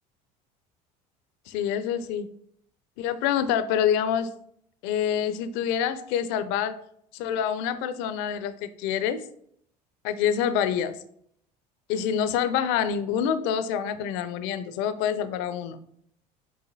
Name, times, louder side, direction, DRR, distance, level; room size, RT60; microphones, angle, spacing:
voice 1, 1.5-2.3 3.0-4.3 4.8-6.8 7.1-9.2 10.0-10.9 11.9-15.8, left 8 dB, 65° left, 12 dB, 0.4 m, -26 dB
5.5 x 2.6 x 2.6 m, 0.67 s
hypercardioid pair, 65°, 20 cm